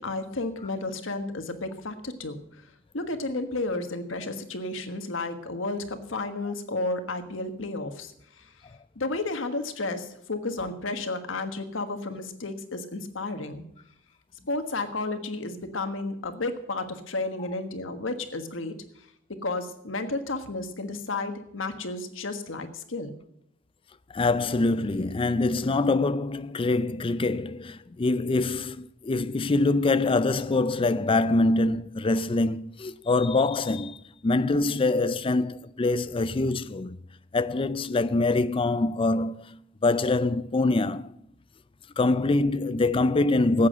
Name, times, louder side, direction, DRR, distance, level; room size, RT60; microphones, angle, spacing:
voice 1, 0.0-2.4 2.9-8.5 8.9-13.6 14.5-18.7 19.3-23.1, left 2 dB, 85° left, 1.4 m, -32 dB
voice 2, 24.1-37.0 37.3-41.1 42.0-43.7, left 2 dB, 25° left, 0.4 m, -24 dB
13.5 x 8.5 x 7.6 m
head